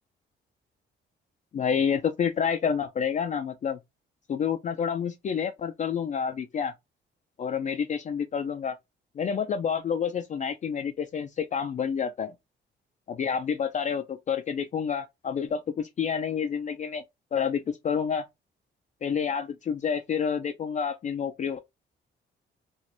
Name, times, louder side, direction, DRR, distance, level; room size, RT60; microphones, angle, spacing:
voice 1, 1.5-3.8 4.3-6.7 7.4-8.8 9.2-12.3 13.1-17.0 17.3-18.3 19.0-21.6, left 7 dB, 40° left, 0.4 m, -29 dB
3.0 x 2.4 x 2.9 m
cardioid pair, 90°, 20 cm